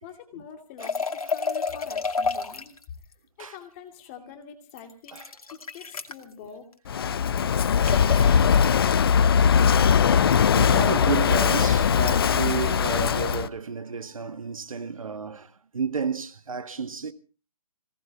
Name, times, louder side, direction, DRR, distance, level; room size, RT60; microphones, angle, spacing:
voice 1, 0.0-2.7 3.4-5.2 5.5-8.4, left 7 dB, 20° left, 2.6 m, -45 dB
sound 1, 0.8-2.8 4.7-6.2 7.9-9.0, left 4 dB, 70° left, 2.5 m, -30 dB
Walk footsteps / Wind / Waves surf, 6.9-13.5, left 7 dB, 40° left, 0.8 m, -20 dB
voice 2, 10.5-17.1, right 5 dB, 65° right, 1.9 m, -31 dB
26.5 x 18.0 x 2.9 m
figure-of-eight pair, 150°, 19 cm